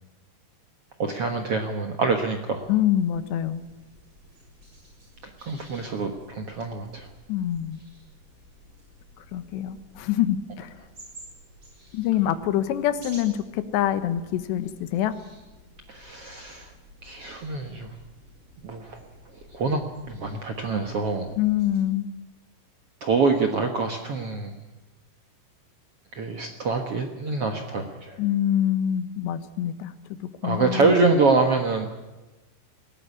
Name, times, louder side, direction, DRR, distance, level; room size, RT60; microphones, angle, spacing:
voice 1, 1.0-2.7 5.2-7.1 15.9-16.7 17.0-17.9 18.6-19.0 19.5-21.3 23.0-24.6 26.1-28.2 30.4-31.9, right 4 dB, 75° right, 4 dB, 1.3 m, -25 dB
sound 1, 2.6-21.8, equal, 25° right, 7.9 m, -51 dB
voice 2, 2.7-3.6 7.3-7.8 9.2-10.7 11.9-15.1 21.4-22.1 28.2-29.9 30.2-30.9, left 11 dB, 85° left, 11 dB, 3.4 m, -25 dB
21.0 x 17.0 x 9.8 m, 1.1 s
omnidirectional pair, 5.0 m